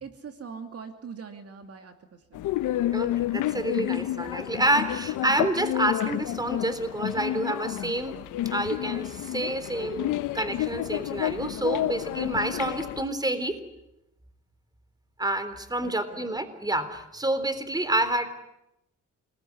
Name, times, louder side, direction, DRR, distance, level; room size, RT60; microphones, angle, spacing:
voice 1, 0.0-2.5 15.8-16.3, right 6 dB, 55° right, 7 dB, 2.7 m, -42 dB
sound 1, 2.3-13.0, left 14 dB, 85° left, 1.0 m, -30 dB
voice 2, 2.9-8.2 8.5-13.6 15.2-18.3, right 1 dB, 15° right, 12 dB, 3.7 m, -28 dB
28.0 x 20.5 x 9.9 m, 0.87 s
cardioid pair, 90°, 30 cm